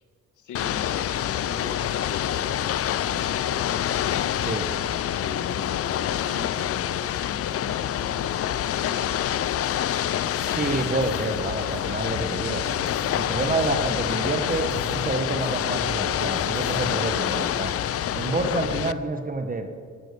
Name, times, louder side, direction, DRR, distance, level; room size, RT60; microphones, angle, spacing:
voice 1, 0.4-4.4 5.1-9.2, left 4 dB, 75° left, 5 dB, 2.1 m, -39 dB
Ocean / Boat Water vehicle, 0.5-18.9, left 11 dB, 50° left, 0.5 m, -27 dB
sound 1, 10.3-17.7, equal, ahead, 3.1 m, -40 dB
voice 2, 10.4-12.7 13.1-17.7 18.1-19.7, right 3 dB, 30° right, 7 dB, 1.4 m, -28 dB
14.0 x 11.5 x 6.7 m, 2.1 s
cardioid pair, 90°, 30 cm